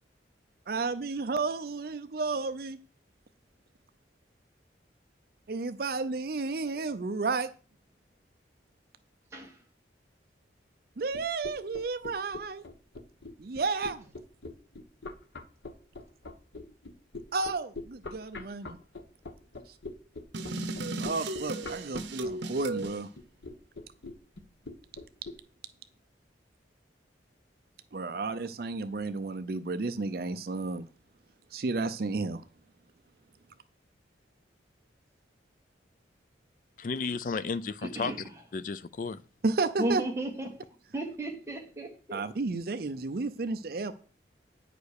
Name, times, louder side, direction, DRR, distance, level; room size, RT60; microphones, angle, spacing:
voice 1, 0.7-2.8 5.5-7.5 11.0-12.6 13.4-14.1 17.3-18.8 21.0-23.1 27.9-30.9 31.5-32.4 39.4-40.0 42.1-43.9, right 3 dB, 55° right, 0.5 m, -32 dB
sound 1, 11.1-25.4, left 3 dB, 75° left, 1.1 m, -43 dB
sound 2, 20.3-23.0, right 2 dB, 80° right, 0.9 m, -35 dB
voice 2, 36.8-38.1 38.5-39.2, left 4 dB, 45° left, 0.4 m, -33 dB
voice 3, 39.8-40.6 40.9-42.2, right 1 dB, 15° right, 1.6 m, -34 dB
9.3 x 5.0 x 6.5 m
head